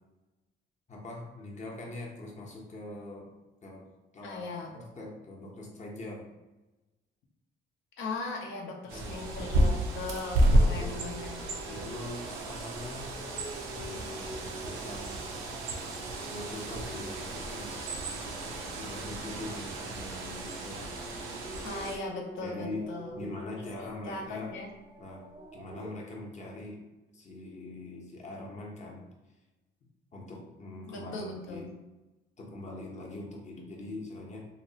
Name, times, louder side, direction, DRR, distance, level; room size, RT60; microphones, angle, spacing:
voice 1, 0.9-3.3 3.6-3.8 4.1-6.2 8.9-9.2 10.7-11.1 11.7-13.1 13.6-15.4 16.1-21.1 22.4-22.8 23.1-24.5 25.0-26.8 27.1-29.0 30.1-31.7 32.4-34.4, left 2 dB, 35° left, -1 dB, 0.8 m, -43 dB
voice 2, 4.2-4.8 8.0-11.9 21.6-23.3 24.0-24.7 30.9-31.6, left 3 dB, 75° left, 0 dB, 0.6 m, -39 dB
Bird, 8.9-22.0, right 1 dB, 85° right, 0.5 m, -32 dB
sound 1, 9.2-19.0 19.3-25.9, right 1 dB, 25° right, 0.3 m, -47 dB
2.8 x 2.0 x 2.7 m, 1.1 s
cardioid pair, 90°, 20 cm